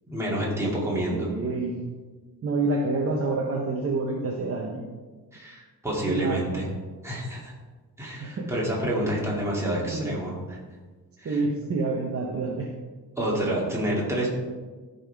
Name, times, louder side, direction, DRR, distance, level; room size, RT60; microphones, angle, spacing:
voice 1, 0.1-1.3 5.3-6.6 7.0-7.5 8.0-10.6 11.2-11.4 13.2-14.3, right 1 dB, 5° right, -5 dB, 2.3 m, -28 dB
voice 2, 1.0-1.8 2.4-4.8 6.1-6.4 8.2-8.5 9.9-10.1 11.2-12.7, right 3 dB, 40° right, -1 dB, 0.9 m, -28 dB
13.5 x 5.5 x 3.5 m, 1.4 s
wide cardioid pair, 155°, 38 cm